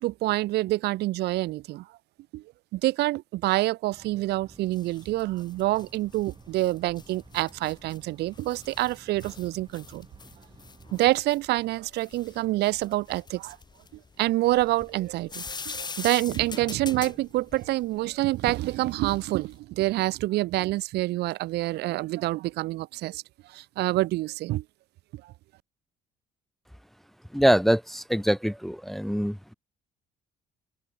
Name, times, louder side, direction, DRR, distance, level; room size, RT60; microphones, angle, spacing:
voice 1, 0.0-1.8 2.3-2.4 2.7-10.1 10.9-13.6 14.2-23.2 23.5-24.6, right 17 dB, 75° right, 0.8 m, -27 dB
sound 1, 3.9-11.0, right 5 dB, 25° right, 3.6 m, -54 dB
sound 2, 4.5-19.5, left 5 dB, 25° left, 1.9 m, -44 dB
voice 2, 27.3-29.5, equal, ahead, 0.5 m, -24 dB
open air
cardioid pair, 110°, 17 cm